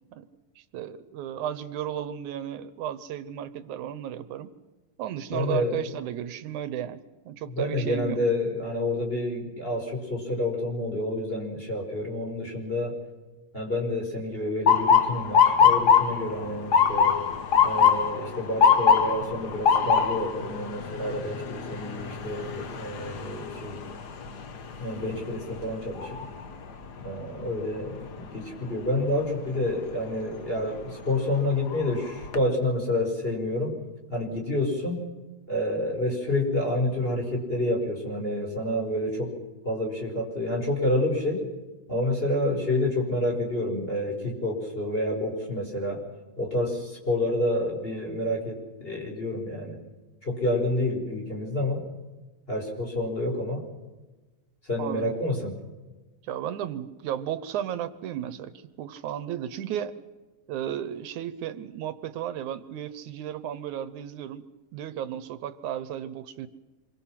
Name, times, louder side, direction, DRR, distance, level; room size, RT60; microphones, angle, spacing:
voice 1, 0.6-4.5 5.0-8.2 54.8-55.1 56.2-59.9 60.5-64.5 64.7-66.5, right 10 dB, 80° right, 13 dB, 2.3 m, -34 dB
voice 2, 5.3-5.8 7.5-13.0 13.5-17.1 17.6-23.8 24.8-26.2 27.0-33.8 34.1-35.0 35.5-39.3 39.6-41.4 41.9-46.0 46.4-49.8 50.2-51.8 52.5-53.6 54.7-55.5, left 1 dB, 15° left, -1 dB, 5.3 m, -28 dB
Motor vehicle (road) / Siren, 14.7-26.6 27.0-27.4 28.2-28.5 30.4-30.6 31.2-31.3 31.7-32.4, left 6 dB, 55° left, 1.1 m, -23 dB
26.5 x 23.5 x 5.9 m, 1.2 s
omnidirectional pair, 3.4 m